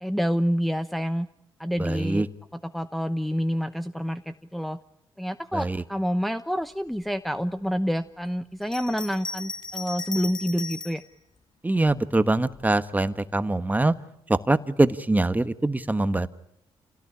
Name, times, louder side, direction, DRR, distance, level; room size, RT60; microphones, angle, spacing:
voice 1, 0.0-1.3 1.6-2.2 2.6-4.8 5.2-11.0, equal, ahead, 8 dB, 0.9 m, -28 dB
voice 2, 1.8-2.3 5.5-5.8 11.6-13.9 14.3-16.3, right 2 dB, 15° right, 12 dB, 1.4 m, -23 dB
Bell, 8.6-11.1 11.8-12.7, left 3 dB, 50° left, 2.8 m, -37 dB
27.0 x 17.5 x 9.9 m, 0.81 s
cardioid pair, 65°, 10 cm